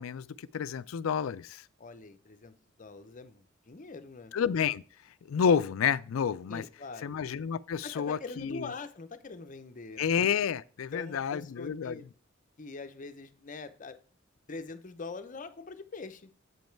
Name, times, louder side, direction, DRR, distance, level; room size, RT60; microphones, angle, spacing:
voice 1, 0.0-1.6 4.3-4.8 5.3-6.6 7.0-8.7 10.0-12.0, left 7 dB, 80° left, 0.4 m, -30 dB
voice 2, 1.8-4.3 6.5-7.1 7.8-10.2 10.9-12.0 12.6-14.0 14.5-16.4, left 3 dB, 40° left, 0.7 m, -43 dB
8.0 x 5.3 x 4.5 m
head